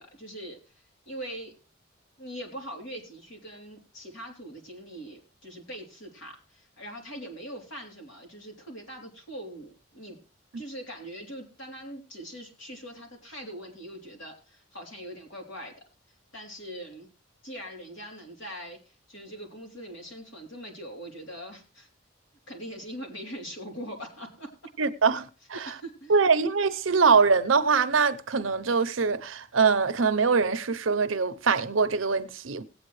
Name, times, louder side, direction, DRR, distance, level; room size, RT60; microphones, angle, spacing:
voice 1, 0.0-1.5 2.2-10.2 10.5-15.7 16.3-17.1 17.4-21.9 22.5-24.5 25.5-26.2, equal, 70° left, 3.3 m, -42 dB
voice 2, 24.8-25.2 25.5-25.6 26.1-32.6, right 5 dB, 85° right, 0.7 m, -23 dB
18.5 x 8.7 x 3.2 m
head